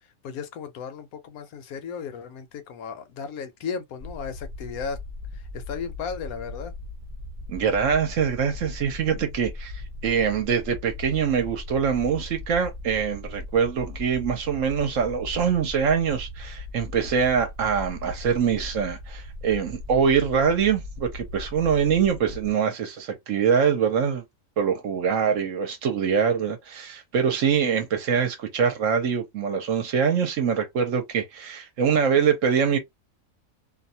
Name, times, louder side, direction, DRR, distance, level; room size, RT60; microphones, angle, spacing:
voice 1, 0.2-5.0 5.3-6.7, left 6 dB, 75° left, 1.0 m, -35 dB
sound 1, 4.0-22.5, left 2 dB, 35° right, 0.7 m, -38 dB
voice 2, 7.5-24.2 24.6-32.8, right 7 dB, 65° right, 0.9 m, -24 dB
2.6 x 2.2 x 2.7 m
omnidirectional pair, 1.6 m